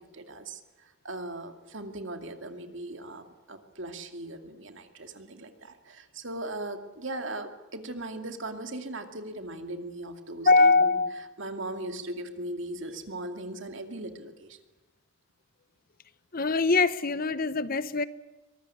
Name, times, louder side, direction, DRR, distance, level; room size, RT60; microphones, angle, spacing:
voice 1, 0.0-11.0 11.4-14.6, right 1 dB, 60° right, 2.4 m, -39 dB
voice 2, 10.4-11.3 16.3-18.0, left 3 dB, 40° left, 0.8 m, -23 dB
24.0 x 20.0 x 9.8 m
head